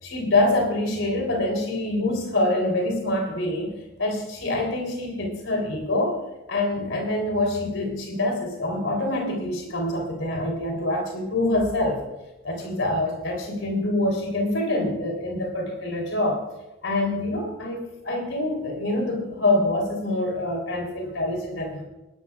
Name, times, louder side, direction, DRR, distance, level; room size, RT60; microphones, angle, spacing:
voice 1, 0.0-6.2 6.5-12.0 12.4-16.4 16.8-21.8, left 1 dB, 75° left, 1 dB, 3.6 m, -25 dB
20.5 x 12.0 x 2.5 m, 1.0 s
head